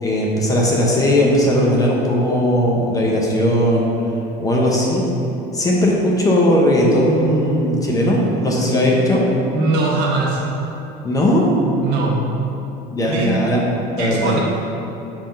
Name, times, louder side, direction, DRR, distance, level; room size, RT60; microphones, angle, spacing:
voice 1, 0.0-3.9 4.4-5.0 5.5-9.2 11.0-11.5 12.9-13.7 13.9-14.4, equal, 20° left, -3 dB, 0.8 m, -17 dB
voice 2, 9.5-10.5 11.8-12.3 13.1-13.3 14.0-14.4, right 2 dB, 65° right, -3 dB, 1.2 m, -21 dB
5.6 x 3.5 x 5.6 m, 3.0 s
cardioid pair, 140°, 19 cm